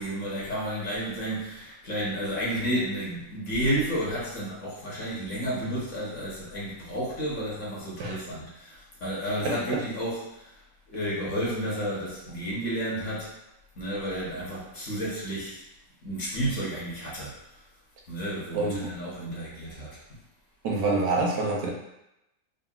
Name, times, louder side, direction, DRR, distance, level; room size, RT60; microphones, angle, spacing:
voice 1, 0.0-10.5 10.9-13.3 13.8-15.6 16.0-17.4 18.1-20.0, equal, 60° left, -6 dB, 1.0 m, -31 dB
voice 2, 9.4-9.8 18.5-18.9 20.6-21.7, right 3 dB, 75° right, -1 dB, 1.1 m, -27 dB
3.7 x 2.0 x 2.2 m, 0.87 s
omnidirectional pair, 1.7 m